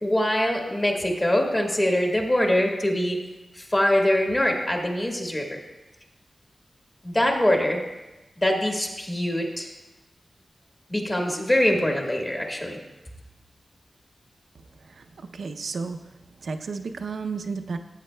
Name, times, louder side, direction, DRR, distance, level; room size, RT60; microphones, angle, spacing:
voice 1, 0.0-3.2 3.5-5.6 7.0-7.8 8.4-9.7 10.9-12.8, left 1 dB, 25° left, 0 dB, 1.5 m, -23 dB
voice 2, 15.3-16.1 16.4-17.8, right 4 dB, 85° right, 6 dB, 0.5 m, -32 dB
15.5 x 8.2 x 2.2 m, 1.0 s
wide cardioid pair, 115°, 0 cm